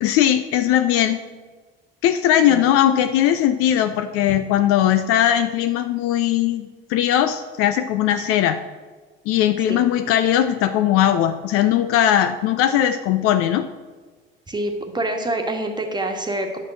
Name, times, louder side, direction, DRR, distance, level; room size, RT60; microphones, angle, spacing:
voice 1, 0.0-1.2 2.0-8.6 9.3-13.7, left 11 dB, 50° left, 10 dB, 0.6 m, -19 dB
voice 2, 14.5-16.6, right 1 dB, 15° right, 4 dB, 1.5 m, -26 dB
10.5 x 5.8 x 6.2 m, 1.4 s
figure-of-eight pair, 60°, 30 cm